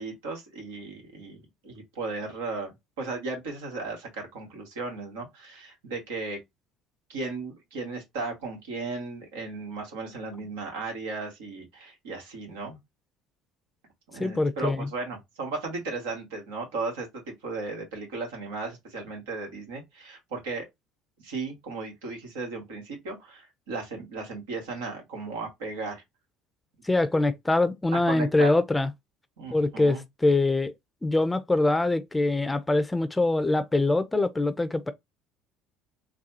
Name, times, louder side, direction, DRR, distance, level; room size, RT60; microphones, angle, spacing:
voice 1, 0.0-2.7 3.0-6.4 7.1-12.8 14.1-20.7 21.2-26.0 27.9-28.5 29.4-30.0, right 3 dB, 85° right, 1.6 m, -35 dB
voice 2, 14.2-14.9 26.8-28.9 29.5-30.7 31.0-34.9, left 2 dB, 15° left, 0.5 m, -24 dB
4.0 x 2.3 x 2.7 m
hypercardioid pair, 75°, 0 cm